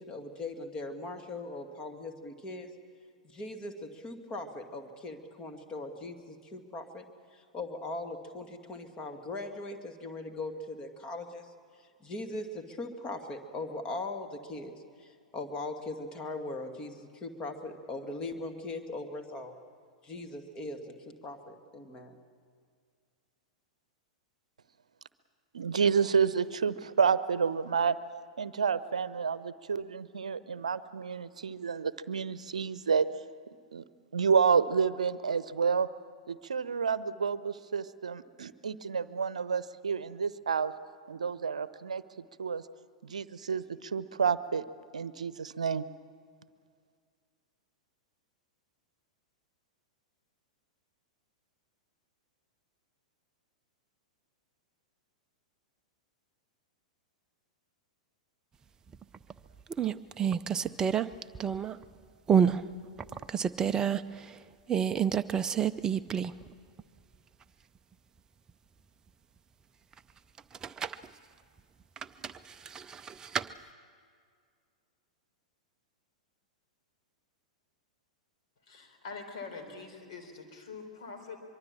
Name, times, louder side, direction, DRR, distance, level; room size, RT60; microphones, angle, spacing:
voice 1, 0.0-2.7 3.2-7.1 7.3-11.5 11.8-14.7 15.0-19.6 20.0-22.2, left 2 dB, 25° left, 5 dB, 2.1 m, -40 dB
voice 2, 25.5-28.0 28.4-33.1 33.7-33.8 34.1-35.9 36.3-40.7 41.1-42.0 42.4-42.6 43.0-44.6 44.9-45.8, right 6 dB, 70° right, 16 dB, 0.8 m, -29 dB
sound 1, 58.9-59.3 59.7-61.8 62.3-62.6 63.0-64.0 64.7-66.5 66.8-66.9 70.4-71.1 72.0-73.5, right 8 dB, 15° right, 0.5 m, -28 dB
voice 3, 78.7-81.4, left 4 dB, 55° left, 4 dB, 3.9 m, -44 dB
24.0 x 23.5 x 7.4 m, 2.1 s
figure-of-eight pair, 100°, 4 cm